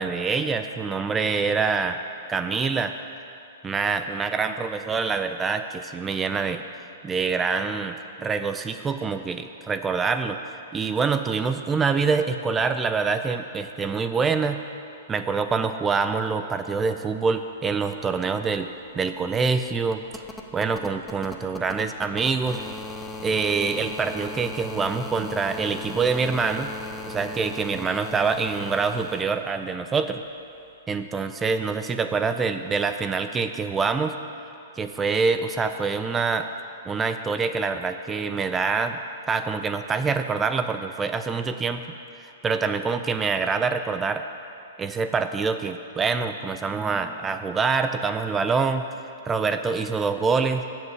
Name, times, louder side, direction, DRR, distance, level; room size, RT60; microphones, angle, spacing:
voice 1, 0.0-2.0 2.3-2.9 3.6-6.6 7.0-10.4 10.7-14.6 15.1-18.7 19.0-20.0 20.5-22.6 23.2-26.7 27.1-30.2 30.9-34.2 34.8-36.5 36.9-39.0 39.3-41.8 42.2-44.3 44.8-48.9 49.3-50.6, right 5 dB, 15° right, 8 dB, 0.4 m, -25 dB
sound 1, 18.0-18.1 18.3-29.2 30.7-30.8, left 2 dB, 15° left, 0.8 m, -38 dB
7.5 x 7.3 x 8.1 m, 2.8 s
hypercardioid pair, 140°, 0 cm